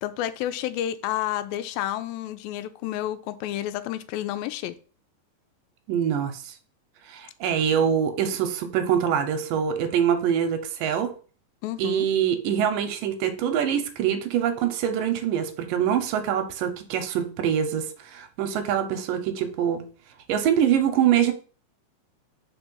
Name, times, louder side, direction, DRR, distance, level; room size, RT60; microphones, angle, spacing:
voice 1, 0.0-4.8 11.6-12.1, left 12 dB, 85° left, 13 dB, 2.3 m, -30 dB
voice 2, 5.9-6.5 7.1-11.1 11.8-19.8 20.3-21.3, right 9 dB, 80° right, 7 dB, 2.2 m, -24 dB
4.6 x 4.4 x 5.4 m, 0.39 s
omnidirectional pair, 4.1 m